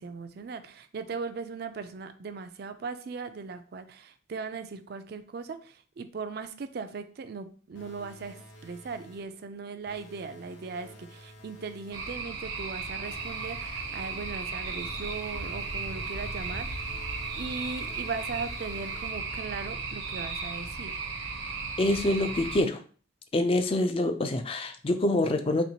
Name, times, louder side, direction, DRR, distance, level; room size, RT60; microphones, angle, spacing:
voice 1, 0.0-17.0 17.3-21.0, right 4 dB, 50° right, 9 dB, 0.4 m, -38 dB
sound 1, 7.7-9.4 9.9-12.4 13.0-19.4, equal, 65° left, 0.8 m, -51 dB
sound 2, 11.9-22.6, right 4 dB, 90° right, 0.9 m, -35 dB
voice 2, 21.8-22.8 23.3-25.6, left 1 dB, 30° left, 8 dB, 0.3 m, -26 dB
4.3 x 2.9 x 2.8 m, 0.42 s
head